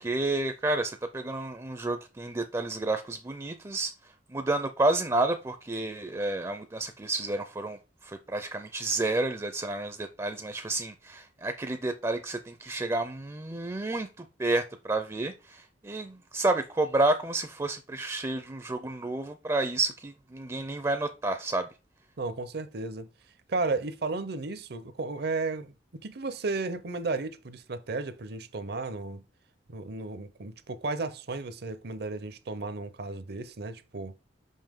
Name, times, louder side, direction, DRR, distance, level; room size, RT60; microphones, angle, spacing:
voice 1, 0.0-3.9 4.3-21.7, right 2 dB, 20° right, 0.4 m, -30 dB
voice 2, 22.2-23.1 23.5-29.2 29.7-34.1, right 3 dB, 60° right, 0.6 m, -34 dB
5.5 x 5.5 x 3.6 m
head